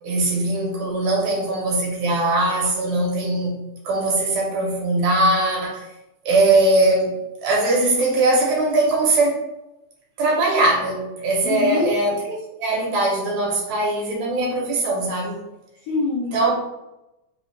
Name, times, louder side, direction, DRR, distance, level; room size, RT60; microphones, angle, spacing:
voice 1, 0.0-3.6 3.9-5.9 6.3-7.2 7.4-9.4 10.2-15.4 16.3-16.5, right 2 dB, 75° right, -2 dB, 2.2 m, -21 dB
voice 2, 11.4-12.0 15.9-16.5, left 4 dB, 70° left, -4 dB, 1.7 m, -24 dB
4.9 x 2.4 x 3.1 m, 0.92 s
omnidirectional pair, 3.4 m